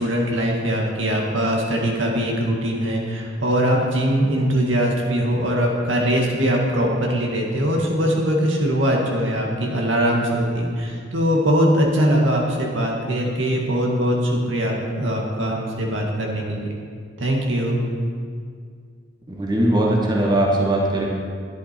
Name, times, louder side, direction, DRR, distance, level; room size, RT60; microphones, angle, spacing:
voice 1, 0.0-16.7 17.2-17.8, equal, 75° right, -1 dB, 2.0 m, -21 dB
voice 2, 19.3-21.1, right 1 dB, 25° right, -2 dB, 1.5 m, -20 dB
12.0 x 10.5 x 4.5 m, 2.1 s
head